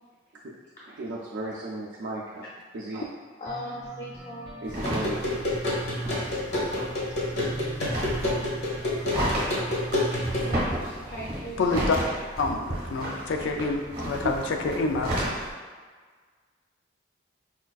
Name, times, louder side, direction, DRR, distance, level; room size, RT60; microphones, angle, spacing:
voice 1, 0.9-2.4 2.7-3.1 4.6-5.5 6.1-6.4 14.2-14.3 14.7-15.0, right 2 dB, 80° right, -6 dB, 0.4 m, -36 dB
voice 2, 3.4-4.6 10.4-11.9 13.4-13.6, equal, 35° left, -7 dB, 0.5 m, -39 dB
sound 1, 3.5-13.3, right 1 dB, 25° right, 0.5 m, -47 dB
sound 2, 4.7-15.5, right 1 dB, 50° right, 0.8 m, -33 dB
sound 3, 4.8-10.5, left 1 dB, 65° left, 1.0 m, -29 dB
voice 3, 11.6-12.0 12.4-15.4, left 3 dB, 90° left, 3 dB, 0.4 m, -27 dB
4.2 x 2.4 x 2.3 m, 1.5 s
head